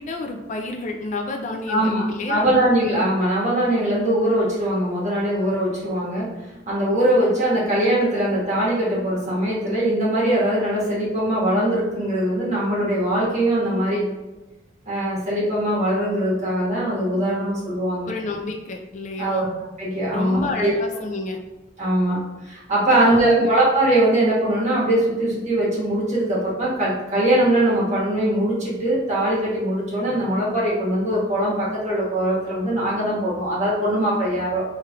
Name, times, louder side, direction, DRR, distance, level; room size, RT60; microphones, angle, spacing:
voice 1, 0.0-2.5 18.0-19.5 20.1-21.4 22.9-23.5, left 3 dB, 40° left, 3 dB, 0.4 m, -30 dB
voice 2, 1.7-14.0 14.8-18.1 19.2-19.5 19.8-20.7 21.8-34.6, right 1 dB, 40° right, -7 dB, 1.4 m, -21 dB
3.3 x 2.4 x 4.3 m, 1.1 s
head